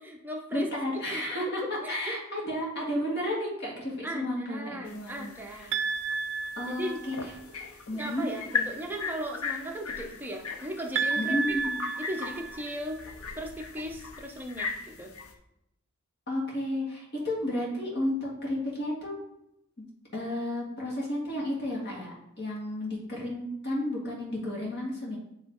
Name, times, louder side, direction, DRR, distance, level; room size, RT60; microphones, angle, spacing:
voice 1, 0.0-0.7 1.1-1.2 1.8-2.2 4.0-5.7 6.7-7.0 7.9-11.4 12.0-13.0 13.4-15.1, equal, 10° right, 0 dB, 0.7 m, -37 dB
voice 2, 0.5-1.6 1.9-5.7 6.6-7.3 7.9-8.3 11.2-11.8 16.3-19.1 20.1-25.2, left 1 dB, 50° left, -4 dB, 1.7 m, -32 dB
sound 1, 4.9-15.3, left 5 dB, 70° left, 0.7 m, -38 dB
sound 2, 5.7-7.4 11.0-13.0, right 5 dB, 55° right, 0.5 m, -32 dB
7.7 x 3.1 x 4.4 m, 0.83 s
head